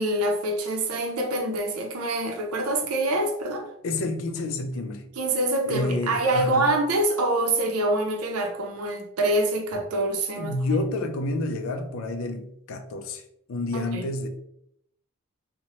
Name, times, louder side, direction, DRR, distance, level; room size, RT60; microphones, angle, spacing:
voice 1, 0.0-3.7 5.2-10.5 13.7-14.0, right 1 dB, 90° right, 0.5 m, -25 dB
voice 2, 3.8-5.0 5.6-6.7 10.4-13.2 13.5-14.3, left 2 dB, 70° left, 0.4 m, -29 dB
2.9 x 2.1 x 2.7 m
head